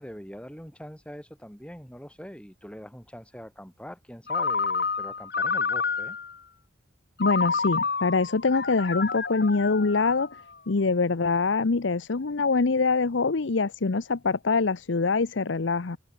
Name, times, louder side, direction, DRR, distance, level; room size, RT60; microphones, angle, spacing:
voice 1, 0.0-6.2, equal, 5° left, 7.2 m, -43 dB
Ringtone, 4.3-6.4 7.2-10.5, left 5 dB, 55° left, 3.1 m, -29 dB
voice 2, 7.2-10.3 10.7-16.0, left 4 dB, 80° left, 0.8 m, -24 dB
open air
head